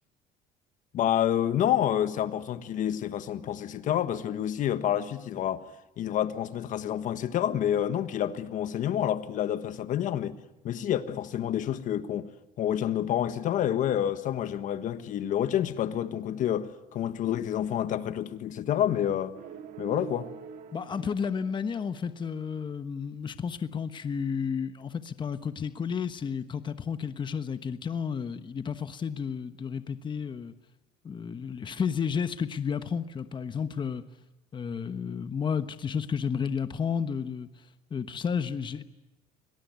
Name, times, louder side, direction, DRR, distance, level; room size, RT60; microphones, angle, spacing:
voice 1, 0.9-5.6 6.0-10.4 10.6-12.3 12.6-19.3 19.8-20.3, left 10 dB, 55° left, 1.5 m, -28 dB
sound 1, 19.3-22.2, right 8 dB, 70° right, 2.7 m, -44 dB
voice 2, 20.7-30.5 31.0-34.0 34.5-37.5 37.9-38.8, left 6 dB, 30° left, 1.2 m, -32 dB
24.5 x 18.5 x 9.4 m
cardioid pair, 115°, 15 cm